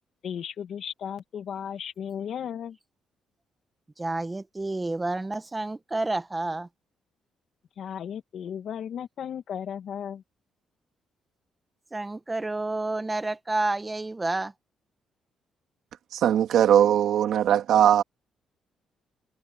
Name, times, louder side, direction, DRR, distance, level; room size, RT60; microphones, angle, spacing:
voice 1, 0.2-2.8 7.8-10.2, left 8 dB, 65° left, 2.4 m, -35 dB
voice 2, 4.0-6.7 11.9-14.5, right 2 dB, 15° right, 1.7 m, -29 dB
voice 3, 16.1-18.0, right 10 dB, 75° right, 2.6 m, -20 dB
cardioid pair, 90°, 0 cm